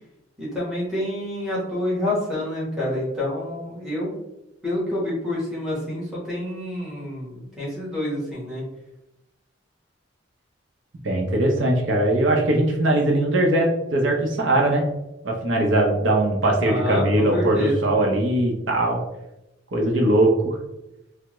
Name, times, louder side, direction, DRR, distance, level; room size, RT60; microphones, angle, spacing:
voice 1, 0.4-4.2 4.6-8.6 16.6-17.9, left 1 dB, 5° right, -9 dB, 1.1 m, -28 dB
voice 2, 11.0-14.8 15.2-19.0 19.7-20.6, right 1 dB, 70° right, 0 dB, 0.6 m, -20 dB
3.4 x 2.0 x 2.9 m, 0.91 s
head